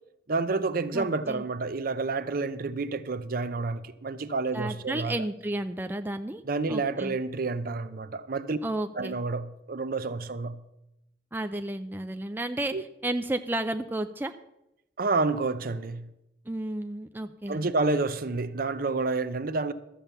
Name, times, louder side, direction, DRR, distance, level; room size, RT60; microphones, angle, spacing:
voice 1, 0.3-5.2 6.4-8.6 8.9-10.6 12.7-12.8 15.0-16.1 17.5-19.7, right 3 dB, 55° right, 0.7 m, -29 dB
voice 2, 0.9-1.4 4.5-6.4 6.7-7.2 8.6-9.2 11.3-14.3 16.5-17.6, right 1 dB, 10° right, 0.4 m, -32 dB
12.5 x 7.4 x 6.8 m
head